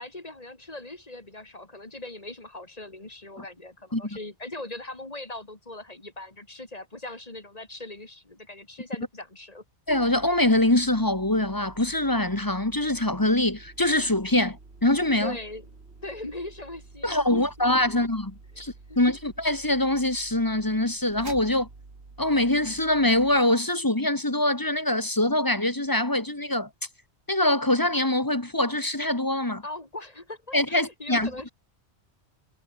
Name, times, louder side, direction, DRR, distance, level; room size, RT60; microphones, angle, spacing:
voice 1, 0.0-9.6 15.2-15.7 16.0-17.5 17.9-18.0 18.6-19.0 29.6-31.5, left 2 dB, 35° left, 2.8 m, -40 dB
voice 2, 9.9-15.4 17.0-21.7 22.2-26.7 27.3-29.6 30.5-31.3, left 1 dB, 20° left, 1.5 m, -24 dB
sound 1, 9.9-23.4, right 3 dB, 70° right, 2.9 m, -49 dB
omnidirectional pair, 1.1 m